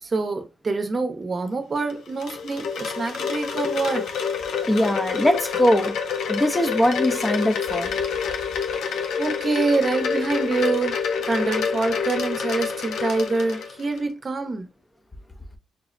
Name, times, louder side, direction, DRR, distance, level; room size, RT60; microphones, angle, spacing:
voice 1, 0.0-4.1 9.2-14.7, right 3 dB, 40° right, 0.7 m, -26 dB
Wind chime, 1.8-14.0, left 6 dB, 80° left, 0.4 m, -27 dB
voice 2, 4.6-5.9 6.3-7.9, equal, 15° left, 0.6 m, -21 dB
5.8 x 2.0 x 2.5 m
supercardioid pair, 60°, 0 cm